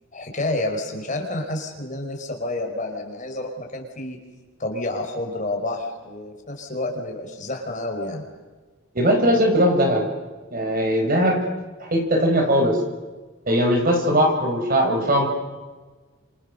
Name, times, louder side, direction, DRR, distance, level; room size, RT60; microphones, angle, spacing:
voice 1, 0.1-4.2 4.6-8.2, left 2 dB, 40° left, 2 dB, 5.0 m, -29 dB
voice 2, 8.9-10.1 10.5-11.4 11.8-12.8 13.5-15.3, equal, 45° right, 3 dB, 5.3 m, -19 dB
30.0 x 27.5 x 6.8 m, 1.3 s
head